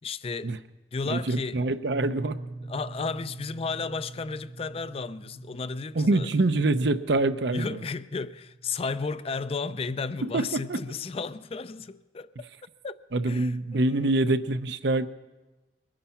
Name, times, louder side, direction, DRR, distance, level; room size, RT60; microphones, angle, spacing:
voice 1, 0.0-0.5 0.9-1.6 2.7-6.3 7.5-12.3 12.8-13.0 13.2-14.2, left 4 dB, 35° left, 0.4 m, -33 dB
voice 2, 1.0-2.4 5.9-7.8 10.2-10.8 13.1-15.1, right 2 dB, 70° right, 0.7 m, -25 dB
sound 1, 1.9-10.6, right 2 dB, 25° right, 0.8 m, -44 dB
21.5 x 10.0 x 5.7 m
head